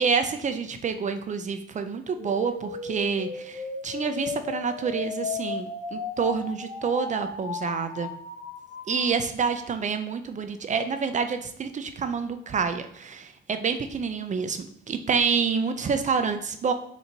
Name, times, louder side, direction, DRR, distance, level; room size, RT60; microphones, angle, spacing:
voice 1, 0.0-8.1 8.9-16.7, right 5 dB, 40° right, 8 dB, 0.4 m, -28 dB
sound 1, 2.1-9.1, left 5 dB, 65° left, 0.9 m, -35 dB
4.4 x 2.6 x 4.0 m, 0.69 s
cardioid pair, 90°, 20 cm